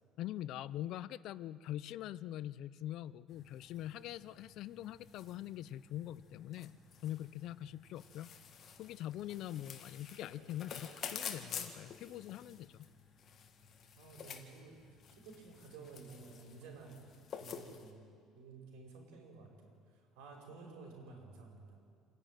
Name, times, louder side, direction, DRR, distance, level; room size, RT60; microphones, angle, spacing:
voice 1, 0.2-6.7 7.0-8.3 8.8-12.9, left 13 dB, 55° left, 18 dB, 0.5 m, -43 dB
sound 1, 3.3-17.9, left 7 dB, 35° left, 1.7 m, -50 dB
voice 2, 13.9-14.7 15.2-17.0 17.4-18.0 18.4-19.7 20.2-21.7, right 4 dB, 85° right, 1 dB, 5.6 m, -53 dB
28.0 x 11.0 x 9.2 m, 2.2 s
cardioid pair, 150°, 0 cm